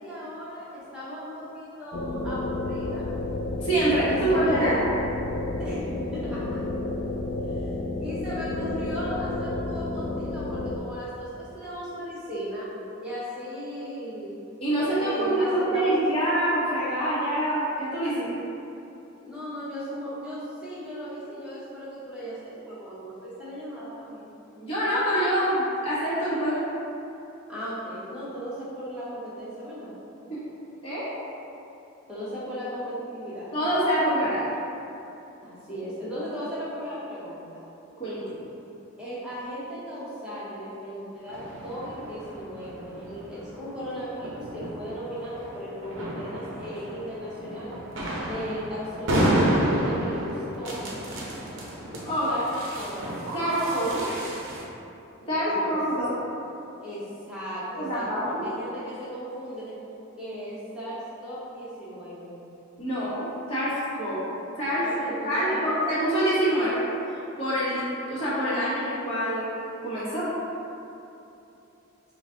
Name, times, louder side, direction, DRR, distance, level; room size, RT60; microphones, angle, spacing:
voice 1, 0.0-3.1 4.1-4.8 5.6-6.6 7.5-7.7 8.0-12.7 13.0-14.3 14.9-16.2 19.2-24.3 27.5-29.9 32.1-33.5 35.4-37.5 39.0-47.7 48.2-51.0 52.3-52.5 52.8-53.0 55.2-55.8 56.8-59.8 60.2-62.4 64.8-65.8, equal, 5° right, -11 dB, 1.1 m, -36 dB
sound 1, 1.9-10.8, left 2 dB, 55° left, 0.3 m, -31 dB
voice 2, 3.6-4.8 14.6-18.3 24.6-26.7 30.3-30.4 30.8-31.1 33.5-34.4 38.0-38.2 52.0-52.3 53.3-54.0 55.3-56.2 57.8-58.4 62.8-64.2 64.6-64.9 65.2-66.8 67.4-67.8 68.1-69.5 69.8-70.3, right 1 dB, 25° left, -12 dB, 1.2 m, -25 dB
sound 2, 41.3-54.6, right 1 dB, 65° right, 0.8 m, -31 dB
5.1 x 2.3 x 3.7 m, 2.9 s
head